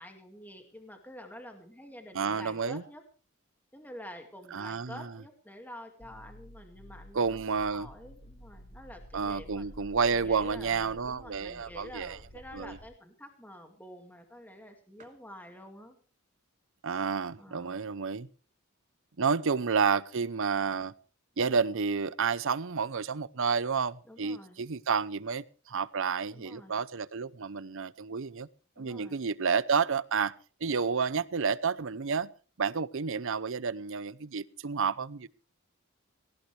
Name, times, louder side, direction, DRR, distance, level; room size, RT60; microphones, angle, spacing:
voice 1, 0.0-3.0 3.7-9.7 10.1-16.0 17.4-17.9 19.4-19.5 24.1-24.6 26.3-26.8 28.8-29.2, equal, 10° left, 4 dB, 2.1 m, -48 dB
voice 2, 2.1-2.8 4.5-5.1 7.1-7.9 9.1-12.2 12.5-12.8 16.8-18.3 19.2-20.9 21.4-28.5 28.8-30.3 30.6-32.3 32.6-35.3, right 5 dB, 65° right, 18 dB, 0.7 m, -30 dB
sound 1, 6.0-12.9, equal, 45° left, 2.7 m, -51 dB
sound 2, 15.0-15.3 16.0-16.1 16.9-18.0 18.4-18.5 18.7-18.9 19.7-19.8 20.0-20.1 20.4-20.5 20.7-21.1 22.0-22.3 22.9-23.0 23.1-23.9, right 4 dB, 35° right, 2.7 m, -61 dB
18.5 x 18.0 x 3.3 m, 0.39 s
head